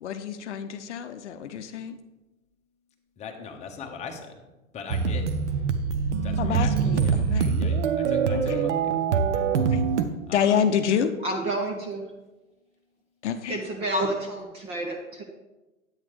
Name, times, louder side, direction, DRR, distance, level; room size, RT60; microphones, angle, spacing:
voice 1, 0.0-2.0 6.4-7.5 8.3-8.6 9.7-9.8 10.3-11.1 13.2-13.6, left 8 dB, 55° left, 9 dB, 0.7 m, -27 dB
voice 2, 3.2-4.4 4.7-5.4 6.2-7.2 7.6-9.0 9.3-9.5 10.3-10.6, left 5 dB, 15° left, 3 dB, 0.9 m, -40 dB
sound 1, 4.9-10.0, right 6 dB, 55° right, 0.8 m, -24 dB
voice 3, 11.2-12.0 13.5-15.2, right 1 dB, 15° right, 2 dB, 0.5 m, -29 dB
8.9 x 8.6 x 3.2 m, 1.1 s
figure-of-eight pair, 110°, 42 cm